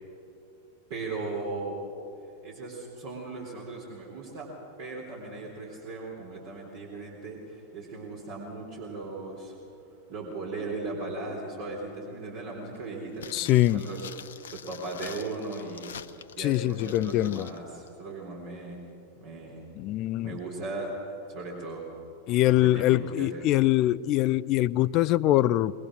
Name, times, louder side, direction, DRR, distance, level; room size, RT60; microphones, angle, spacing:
voice 1, 0.9-1.9 2.4-4.5 4.8-9.6 10.1-16.0 16.4-18.8 19.2-19.6 20.2-21.9 22.6-23.4, right 3 dB, 50° right, -2 dB, 3.8 m, -37 dB
sound 1, 13.1-17.6 17.9-18.0, left 8 dB, 65° left, 0.9 m, -45 dB
voice 2, 13.3-13.9 16.4-17.5 19.7-20.4 22.3-25.7, left 15 dB, 40° left, 19 dB, 0.5 m, -23 dB
22.5 x 22.0 x 6.3 m, 2.7 s
figure-of-eight pair, 90°, 0 cm